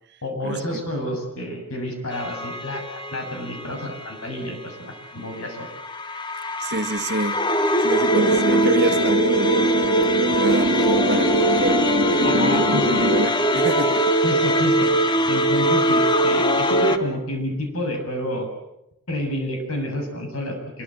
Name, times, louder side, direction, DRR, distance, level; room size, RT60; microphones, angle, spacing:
voice 1, 0.2-5.7 12.2-13.0 14.2-14.9 15.3-18.5 19.1-20.8, left 1 dB, 80° left, 7.6 m, -29 dB
sound 1, 2.1-4.0 5.5-17.0, equal, 20° left, 1.3 m, -21 dB
voice 2, 6.6-9.6 10.3-12.6 13.1-14.1, right 2 dB, 50° right, 1.6 m, -28 dB
sound 2, 8.1-13.2, right 2 dB, 80° right, 2.0 m, -24 dB
26.0 x 23.0 x 7.8 m
head